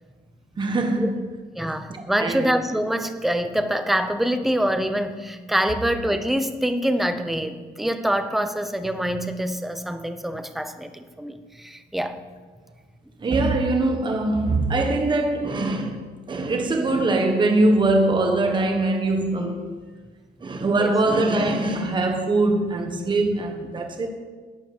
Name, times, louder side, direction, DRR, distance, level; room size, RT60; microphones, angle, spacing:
voice 1, 0.6-1.1 1.9-2.5 13.2-16.0 16.3-19.7 20.4-24.1, right 2 dB, 25° right, 1.3 m, -22 dB
voice 2, 1.5-12.2 20.8-20.9, equal, ahead, 0.7 m, -25 dB
11.0 x 10.5 x 7.6 m
cardioid pair, 170°, 19 cm